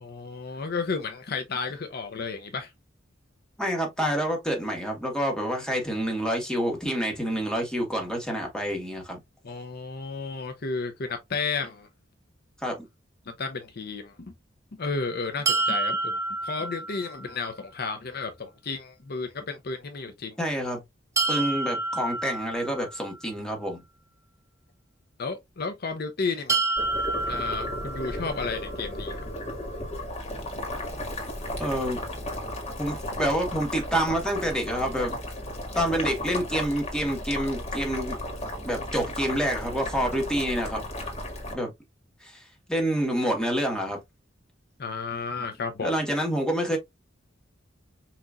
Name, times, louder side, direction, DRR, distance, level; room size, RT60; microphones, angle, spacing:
voice 1, 0.0-2.7 9.4-11.9 13.3-14.3 14.8-20.4 25.2-26.7 27.3-29.2 44.8-45.9, left 4 dB, 55° left, 0.7 m, -32 dB
voice 2, 3.6-9.2 12.6-12.8 20.4-20.8 21.3-23.8 31.6-32.0 32.8-35.2 35.7-38.2 38.6-40.8 41.5-41.7 42.2-44.0 45.8-46.8, equal, 5° left, 1.6 m, -27 dB
sound 1, 15.5-17.4 21.2-23.2 26.5-28.5, right 3 dB, 15° right, 0.4 m, -29 dB
Boiling, 26.8-41.5, left 1 dB, 35° left, 1.8 m, -34 dB
5.8 x 2.9 x 2.5 m
head